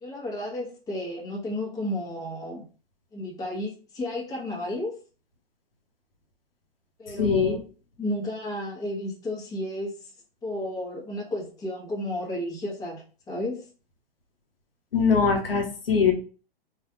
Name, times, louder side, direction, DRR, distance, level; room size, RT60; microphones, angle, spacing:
voice 1, 0.0-2.7 3.1-5.0 7.0-7.6 8.0-9.9 10.4-13.7, left 1 dB, 10° left, -3 dB, 1.0 m, -32 dB
voice 2, 7.2-7.6 14.9-16.1, left 5 dB, 70° left, 2 dB, 0.9 m, -22 dB
4.2 x 2.4 x 2.8 m, 0.36 s
figure-of-eight pair, 110°, 31 cm